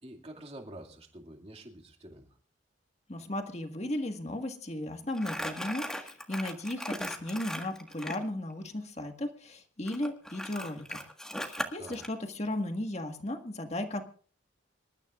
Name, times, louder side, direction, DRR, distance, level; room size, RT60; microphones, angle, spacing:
voice 1, 0.0-2.3 11.8-12.0, right 1 dB, 30° right, 2 dB, 2.3 m, -47 dB
voice 2, 3.1-11.0 11.4-14.0, left 1 dB, 35° left, 5 dB, 1.7 m, -35 dB
Crumpling crinkling, 5.1-8.2 9.9-12.1, equal, 5° left, 1.6 m, -38 dB
26.5 x 13.0 x 2.5 m, 0.42 s
head